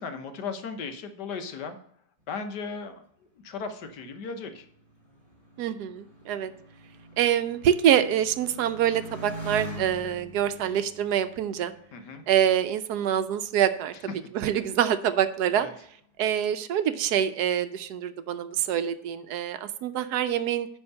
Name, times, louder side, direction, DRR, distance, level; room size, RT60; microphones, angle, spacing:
voice 1, 0.0-1.8 2.3-3.0 3.4-4.6 11.9-12.2 15.6-15.7, left 5 dB, 75° left, 7 dB, 1.5 m, -36 dB
Motorcycle, 3.6-12.6 13.3-13.9, right 1 dB, 15° left, 3.0 m, -44 dB
voice 2, 5.6-6.5 7.2-11.7 12.3-13.9 14.3-15.7 16.2-20.7, right 10 dB, 70° right, 11 dB, 1.1 m, -25 dB
10.0 x 3.6 x 6.8 m, 0.65 s
omnidirectional pair, 1.9 m